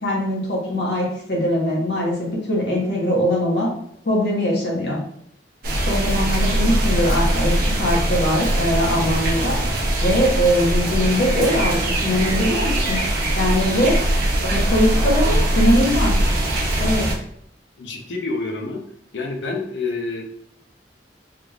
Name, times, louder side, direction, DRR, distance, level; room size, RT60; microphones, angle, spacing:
voice 1, 0.0-3.7 4.0-5.0 5.8-9.6 10.0-13.0 13.3-14.0 14.4-16.1 16.8-17.1, equal, 70° left, -3 dB, 1.2 m, -21 dB
sound 1, 5.6-17.1, right 1 dB, 55° right, 0.7 m, -21 dB
voice 2, 17.8-18.8 19.1-20.2, left 3 dB, 90° left, 2 dB, 0.7 m, -28 dB
3.6 x 3.2 x 2.4 m, 0.68 s
head